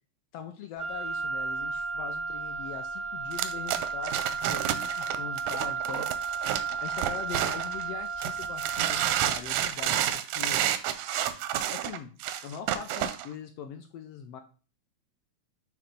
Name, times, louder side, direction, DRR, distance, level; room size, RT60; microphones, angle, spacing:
voice 1, 0.3-6.2 6.8-10.6 11.7-14.4, left 8 dB, 80° left, 6 dB, 1.4 m, -42 dB
Wind instrument woodwind instrument, 0.8-9.5, right 5 dB, 50° right, 0.7 m, -34 dB
sound 1, 3.3-7.8 8.2-13.3, right 11 dB, 85° right, 2.0 m, -30 dB
8.6 x 3.2 x 5.2 m, 0.37 s
omnidirectional pair, 3.3 m